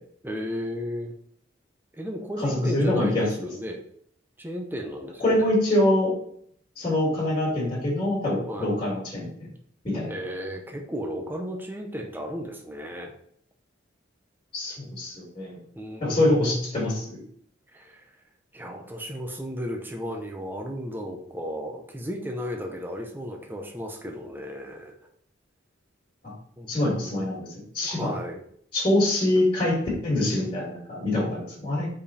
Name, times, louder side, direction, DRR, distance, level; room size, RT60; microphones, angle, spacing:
voice 1, 0.2-1.1 1.9-3.8 4.4-5.5 8.5-8.7 10.1-13.1 15.7-16.8 17.7-18.1 18.5-24.9 26.6-27.3 27.8-28.4, equal, 10° right, 1 dB, 0.8 m, -34 dB
voice 2, 2.4-3.5 5.2-6.1 6.8-9.5 9.8-10.1 14.5-15.6 16.0-17.1 26.2-26.3 26.7-27.5 27.7-28.1 28.7-29.8 30.0-31.9, left 1 dB, 30° left, -8 dB, 2.8 m, -24 dB
5.3 x 4.9 x 4.2 m, 0.64 s
head